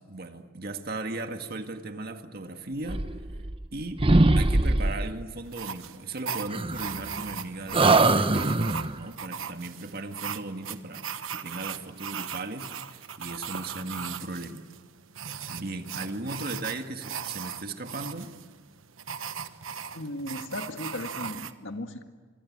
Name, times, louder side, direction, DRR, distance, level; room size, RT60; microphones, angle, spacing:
voice 1, 0.1-3.1 3.7-4.1 4.4-14.6 15.5-18.3, right 2 dB, 50° right, 6 dB, 1.8 m, -37 dB
sound 1, 2.8-3.7 4.0-5.2 6.5-7.4 7.7-9.0, right 2 dB, 25° right, 0.9 m, -22 dB
sound 2, 5.5-21.5, right 7 dB, 85° right, 1.2 m, -38 dB
voice 2, 19.9-22.0, left 1 dB, 70° left, 6 dB, 2.0 m, -36 dB
26.0 x 23.0 x 8.7 m, 1.5 s
head